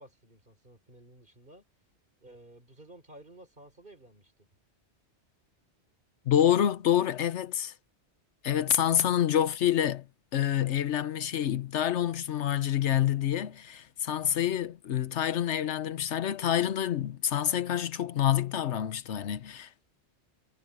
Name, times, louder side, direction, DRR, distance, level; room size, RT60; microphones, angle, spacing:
voice 1, 0.0-1.6 2.2-4.5, right 1 dB, 45° right, 4.4 m, -53 dB
voice 2, 6.3-7.7 8.4-10.1 10.3-19.7, left 10 dB, 80° left, 1.1 m, -27 dB
omnidirectional pair, 1.2 m